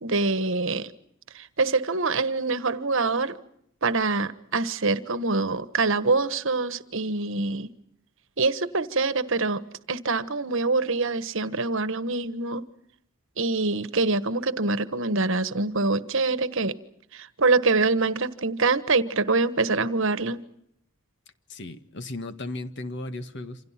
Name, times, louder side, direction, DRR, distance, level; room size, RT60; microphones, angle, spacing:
voice 1, 0.0-0.9 1.3-3.4 3.8-7.7 8.4-9.6 9.9-12.7 13.4-16.8 17.1-20.4, right 3 dB, 65° right, 1.3 m, -25 dB
voice 2, 21.5-23.7, left 2 dB, 60° left, 1.7 m, -36 dB
28.5 x 26.5 x 5.9 m
head